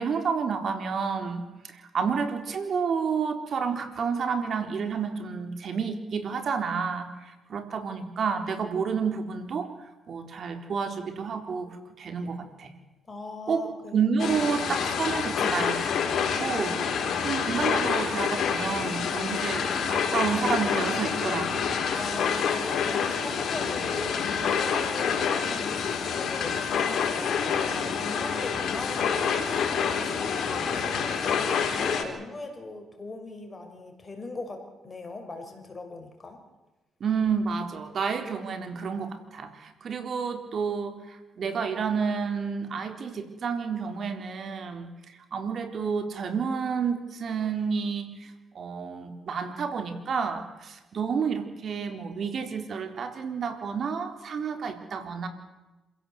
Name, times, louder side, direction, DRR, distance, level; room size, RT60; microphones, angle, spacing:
voice 1, 0.0-9.7 10.1-11.7 12.0-12.7 13.5-13.7 13.9-15.8 16.4-21.7 37.0-55.3, right 6 dB, 55° right, 7 dB, 3.9 m, -30 dB
voice 2, 13.1-14.0 21.9-36.4, left 2 dB, 25° left, 4 dB, 5.8 m, -40 dB
sound 1, 14.2-32.0, left 6 dB, 60° left, 4.1 m, -27 dB
27.0 x 16.5 x 8.0 m, 1.1 s
cardioid pair, 90°, 0 cm